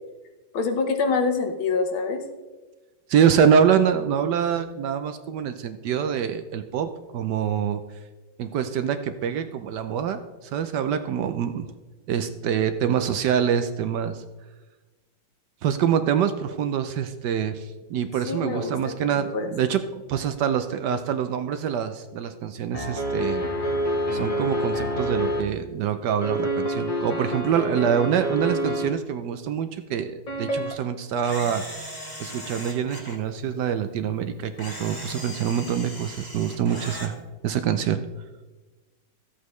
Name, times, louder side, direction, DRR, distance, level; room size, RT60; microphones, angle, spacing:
voice 1, 0.5-2.2 18.3-19.5, left 4 dB, 85° left, 5 dB, 1.9 m, -26 dB
voice 2, 3.1-7.8 8.4-11.7 12.1-14.2 15.6-19.8 20.1-23.5 24.1-31.6 32.2-37.1 37.4-38.0, right 8 dB, 70° right, 9 dB, 1.1 m, -25 dB
sound 1, 22.7-25.4 26.2-28.9 30.3-30.7, equal, 35° left, 0.5 m, -27 dB
Camera, 31.2-33.2 34.6-37.1, equal, 10° left, 1.7 m, -38 dB
14.0 x 8.1 x 3.1 m, 1.2 s
omnidirectional pair, 2.2 m